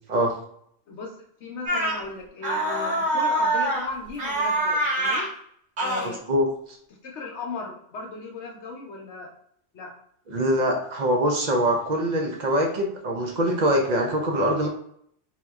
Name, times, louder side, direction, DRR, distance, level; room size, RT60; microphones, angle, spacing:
voice 1, 1.4-5.3 5.8-6.2 7.0-9.3 9.7-9.9, left 3 dB, 65° left, 0 dB, 0.9 m, -36 dB
sound 1, 1.7-2.0 2.4-3.9 4.2-5.3 5.8-6.1, right 1 dB, 80° right, 1.6 m, -24 dB
voice 2, 6.0-6.5 10.3-14.7, equal, 45° right, 1 dB, 0.6 m, -23 dB
3.9 x 2.8 x 2.3 m, 0.67 s
omnidirectional pair, 1.3 m